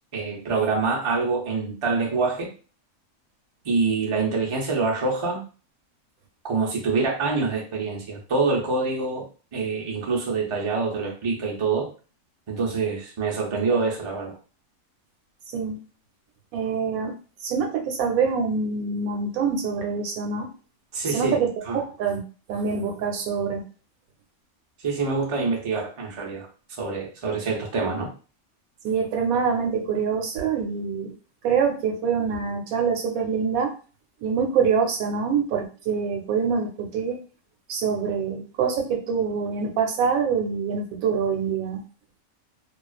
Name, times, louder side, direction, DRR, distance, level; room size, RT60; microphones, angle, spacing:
voice 1, 0.1-2.5 3.6-5.4 6.4-9.2 9.5-11.9 12.5-14.3 20.9-21.4 21.6-21.8 24.8-26.5 26.8-28.1, right 4 dB, 45° right, -2 dB, 0.4 m, -25 dB
voice 2, 16.5-17.1 17.4-20.5 21.1-21.5 21.7-22.2 22.5-23.6 28.8-31.1 31.4-33.7 34.2-37.2 37.7-41.8, right 6 dB, 90° right, 3 dB, 1.1 m, -25 dB
2.3 x 2.3 x 2.3 m, 0.37 s
omnidirectional pair, 1.5 m